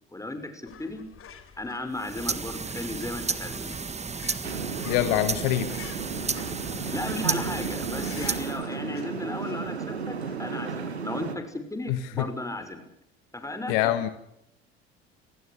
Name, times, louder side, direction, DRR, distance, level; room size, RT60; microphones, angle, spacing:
voice 1, 0.1-1.0 1.6-3.7 6.9-12.8 13.3-13.8, left 2 dB, 10° left, 8 dB, 6.0 m, -35 dB
sound 1, 0.6-10.4, left 8 dB, 40° left, 4.9 m, -50 dB
sound 2, 1.9-8.6, right 5 dB, 20° right, 1.6 m, -33 dB
sound 3, 4.4-11.4, right 6 dB, 85° right, 1.9 m, -34 dB
voice 2, 4.8-5.7 11.9-12.3 13.7-14.1, left 13 dB, 65° left, 11 dB, 1.6 m, -25 dB
26.0 x 20.0 x 6.7 m, 0.79 s
figure-of-eight pair, 60°, 32 cm